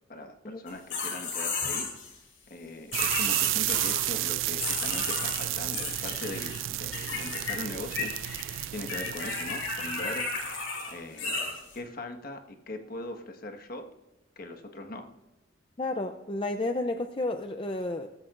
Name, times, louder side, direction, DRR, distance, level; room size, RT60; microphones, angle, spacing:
voice 1, 0.1-1.9 2.5-8.1 8.7-10.3 10.9-11.4 11.7-13.9 14.4-15.1, left 2 dB, 50° left, 5 dB, 1.5 m, -40 dB
sound 1, 0.7-2.1 2.9-4.3 4.6-6.6 6.9-7.6 7.8-11.7, left 3 dB, 85° left, 4.9 m, -34 dB
sound 2, 2.9-10.8, right 15 dB, 85° right, 0.4 m, -32 dB
voice 2, 15.8-18.1, left 2 dB, 25° left, 6 dB, 0.5 m, -31 dB
22.5 x 13.5 x 2.5 m, 0.99 s
head